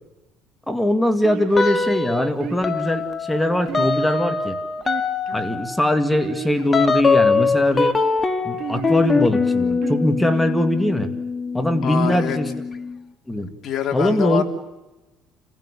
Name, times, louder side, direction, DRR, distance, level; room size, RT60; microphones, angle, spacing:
voice 1, 0.7-4.6 5.3-7.9 8.4-11.1 11.5-12.5 13.3-13.5 13.9-14.4, left 1 dB, 5° left, 7 dB, 2.1 m, -21 dB
sound 1, 1.2-1.8 2.4-2.9 3.7-4.4 4.8-5.5 6.1-6.8 7.3-7.9 8.6-9.2 9.8-10.5, right 10 dB, 55° right, 3.0 m, -33 dB
sound 2, 1.5-2.3 2.6-13.0, left 4 dB, 25° left, 1.8 m, -23 dB
voice 2, 11.8-12.4 13.4-14.4, left 9 dB, 50° left, 3 dB, 3.2 m, -25 dB
29.0 x 16.0 x 8.4 m, 1.1 s
cardioid pair, 115°, 0 cm